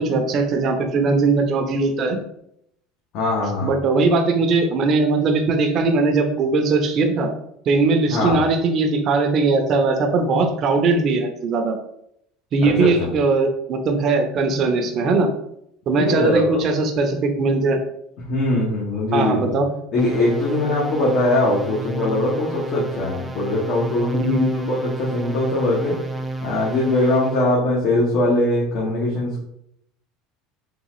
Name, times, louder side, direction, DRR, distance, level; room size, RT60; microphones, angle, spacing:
voice 1, 0.0-2.2 3.6-7.3 7.7-11.8 12.5-15.3 15.9-17.8 19.1-19.7 24.1-24.5, right 3 dB, 45° right, 4 dB, 0.7 m, -20 dB
voice 2, 3.1-3.7 8.1-8.4 12.6-13.1 15.9-16.7 18.3-19.5 19.9-26.0 26.4-29.4, left 1 dB, 55° left, -5 dB, 1.1 m, -21 dB
sound 1, 20.0-27.5, right 2 dB, 15° right, 0.4 m, -32 dB
3.7 x 2.4 x 3.1 m, 0.74 s
supercardioid pair, 110°, 0 cm